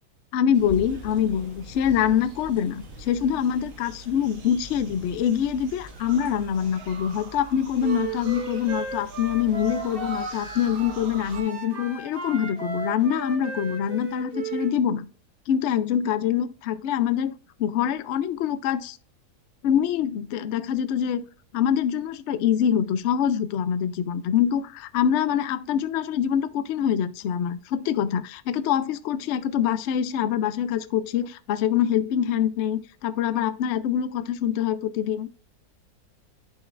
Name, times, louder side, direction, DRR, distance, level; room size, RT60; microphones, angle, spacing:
voice 1, 0.3-15.1 15.5-17.3 17.6-19.0 19.6-21.2 21.5-35.3, left 9 dB, 85° left, 0.6 m, -25 dB
sound 1, 0.5-6.7, left 2 dB, 25° left, 1.5 m, -46 dB
sound 2, 0.5-11.4, right 4 dB, 80° right, 2.0 m, -43 dB
Wind instrument woodwind instrument, 7.8-11.0 11.3-14.7, right 4 dB, 35° right, 1.4 m, -35 dB
11.0 x 4.4 x 2.5 m
omnidirectional pair, 1.8 m